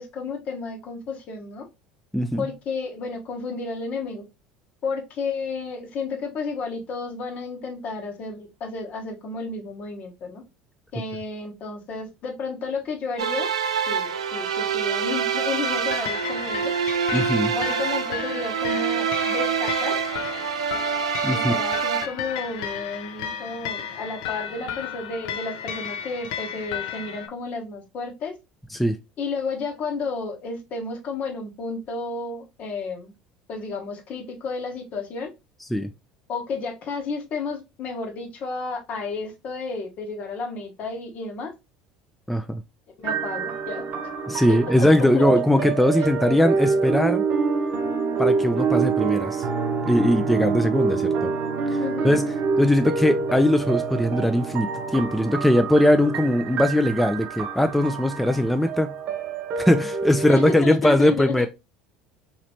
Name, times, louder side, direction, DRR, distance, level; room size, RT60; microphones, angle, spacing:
voice 1, 0.0-1.7 2.4-4.2 4.8-10.4 10.9-13.6 13.9-16.7 17.5-20.0 21.3-28.3 29.2-33.1 33.5-35.3 36.3-41.5 43.0-43.9 44.5-44.7 45.0-45.2 46.3-46.8 51.8-52.2 60.3-61.5, left 4 dB, 50° left, 0.9 m, -32 dB
voice 2, 2.1-2.5 17.1-17.5 21.2-21.5 28.7-29.0 35.7-35.9 42.3-42.6 44.3-47.2 48.2-49.5 49.9-51.3 51.7-52.2 52.6-58.9 59.6-61.5, left 1 dB, ahead, 0.3 m, -20 dB
sound 1, 13.2-22.1, right 7 dB, 85° right, 0.3 m, -26 dB
sound 2, 15.6-27.3, left 8 dB, 70° left, 0.4 m, -34 dB
sound 3, 43.0-60.6, right 5 dB, 50° right, 0.6 m, -26 dB
3.0 x 2.9 x 2.7 m
hypercardioid pair, 70°, 3 cm